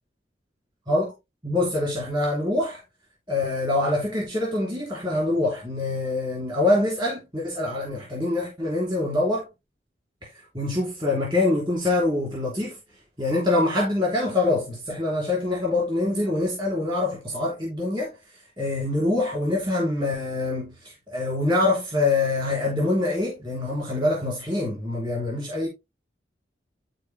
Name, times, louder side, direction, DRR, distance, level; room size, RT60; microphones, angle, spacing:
voice 1, 1.4-2.8 3.3-9.5 10.5-12.8 13.2-18.1 18.6-25.7, left 2 dB, 25° right, 3.1 m, -25 dB
11.5 x 4.4 x 3.3 m
head